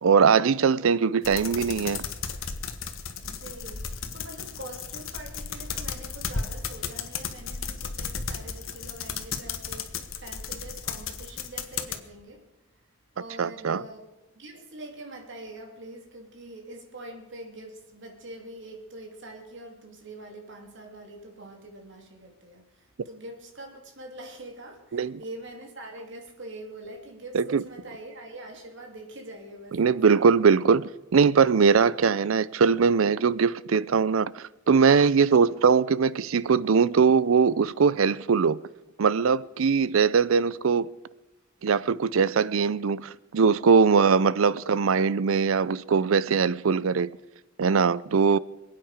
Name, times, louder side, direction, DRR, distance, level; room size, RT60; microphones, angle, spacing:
voice 1, 0.0-2.0 13.4-13.8 24.9-25.2 27.3-27.6 29.8-38.6 39.0-40.9 41.6-47.1 47.6-48.4, right 5 dB, 80° right, 0.5 m, -21 dB
sound 1, 1.2-12.0, left 6 dB, 80° left, 1.4 m, -35 dB
voice 2, 3.2-12.5 13.1-14.1 14.3-30.0, right 1 dB, 65° right, 3.0 m, -44 dB
26.5 x 9.1 x 5.1 m
head